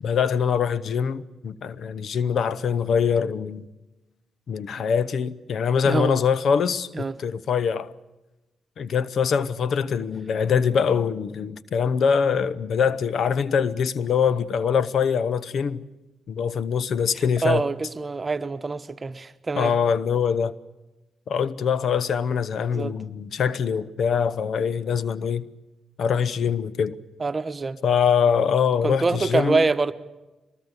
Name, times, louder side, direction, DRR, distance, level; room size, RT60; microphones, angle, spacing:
voice 1, 0.0-3.7 4.5-7.9 8.8-15.8 16.3-17.7 19.6-20.5 21.3-25.4 26.0-27.0 27.8-29.7, left 7 dB, 65° left, 0.8 m, -23 dB
voice 2, 5.8-6.2 6.9-7.1 17.4-19.7 22.7-22.9 27.2-27.8 28.8-29.9, right 3 dB, 35° right, 1.2 m, -25 dB
23.0 x 20.0 x 8.2 m
supercardioid pair, 55°, 0 cm